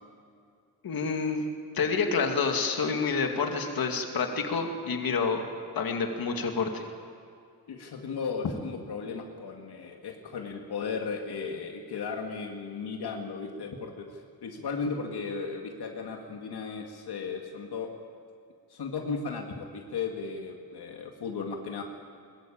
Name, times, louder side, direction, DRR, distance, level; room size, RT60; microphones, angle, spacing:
voice 1, 0.8-1.4 1.7-5.4 5.8-6.9, left 5 dB, 65° left, 3 dB, 2.4 m, -28 dB
voice 2, 7.7-17.9 18.7-21.8, left 5 dB, 80° left, 2 dB, 2.2 m, -35 dB
21.5 x 21.0 x 8.8 m, 2.4 s
wide cardioid pair, 160°, 39 cm